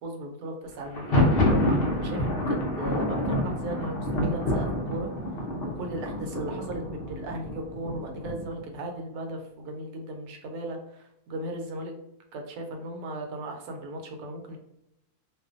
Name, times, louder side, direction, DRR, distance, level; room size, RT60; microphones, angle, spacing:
voice 1, 0.0-5.1 5.7-12.0 12.3-14.6, right 1 dB, 80° right, 3 dB, 1.1 m, -37 dB
Thunder, 0.9-8.6, left 1 dB, 80° left, 0.5 m, -27 dB
2.5 x 2.4 x 2.4 m, 0.83 s
omnidirectional pair, 1.6 m